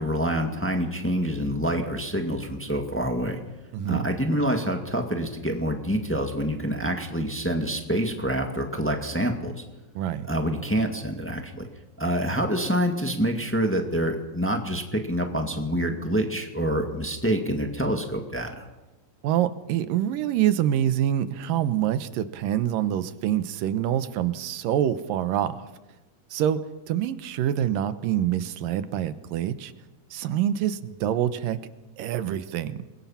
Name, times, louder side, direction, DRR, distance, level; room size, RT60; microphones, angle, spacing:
voice 1, 0.0-3.4 3.8-9.6 10.3-11.7 12.0-18.7, equal, 5° left, 3 dB, 1.1 m, -26 dB
voice 2, 3.7-4.1 10.0-10.3 19.2-25.7 26.3-29.7 30.1-31.6 32.0-32.9, right 11 dB, 85° right, 12 dB, 2.7 m, -26 dB
28.0 x 22.0 x 5.8 m, 1.1 s
omnidirectional pair, 3.9 m